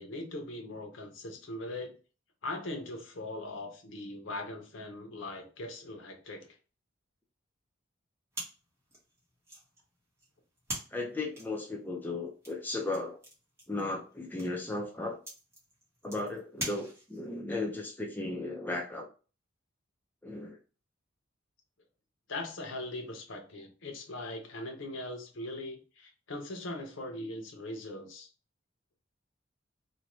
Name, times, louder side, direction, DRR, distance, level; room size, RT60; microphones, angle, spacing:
voice 1, 0.0-1.9 2.4-6.5 22.3-28.3, left 2 dB, 75° left, 4 dB, 0.7 m, -40 dB
sound 1, 8.3-17.4, right 1 dB, 15° right, 0.9 m, -45 dB
voice 2, 10.9-13.2 13.7-15.2 16.0-19.1 20.2-20.6, left 2 dB, 10° left, 0 dB, 0.4 m, -35 dB
2.6 x 2.2 x 3.0 m, 0.35 s
head